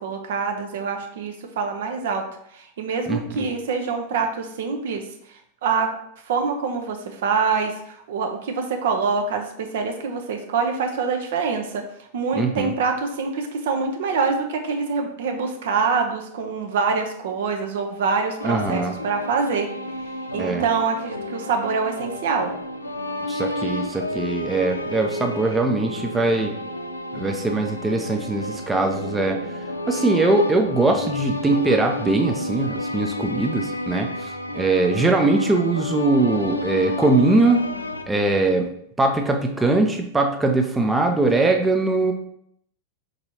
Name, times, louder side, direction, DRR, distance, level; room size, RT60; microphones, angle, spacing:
voice 1, 0.0-2.2 2.5-5.0 5.6-5.9 6.3-11.8 12.1-19.7 20.3-22.5, right 5 dB, 55° right, 4 dB, 0.7 m, -25 dB
voice 2, 3.1-3.5 12.4-12.7 18.4-18.9 20.4-20.7 23.3-26.5 27.1-29.4 29.9-37.6 38.1-38.7 39.0-42.1, right 2 dB, 10° right, 3 dB, 0.5 m, -21 dB
sound 1, 18.4-38.0, left 1 dB, 80° left, 0.4 m, -31 dB
4.6 x 4.0 x 2.7 m, 0.70 s
figure-of-eight pair, 90°, 0 cm